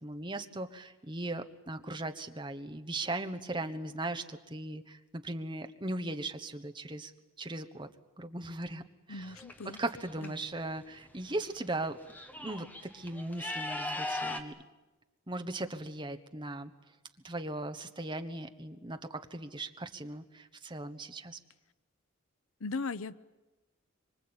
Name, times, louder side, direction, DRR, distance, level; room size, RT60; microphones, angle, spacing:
voice 1, 0.0-7.1 7.4-7.9 8.2-8.8 9.1-9.3 9.8-12.0 12.4-12.7 12.9-14.5 15.3-16.7 17.2-21.4, right 2 dB, 20° right, 8 dB, 1.2 m, -38 dB
voice 2, 9.1-9.8 10.2-10.4 22.6-23.1, left 4 dB, 75° left, 15 dB, 0.8 m, -38 dB
sound 1, 9.2-10.3 11.4-11.5 11.8-14.4, left 2 dB, 10° left, 1.5 m, -39 dB
25.0 x 24.5 x 8.9 m, 1.1 s
head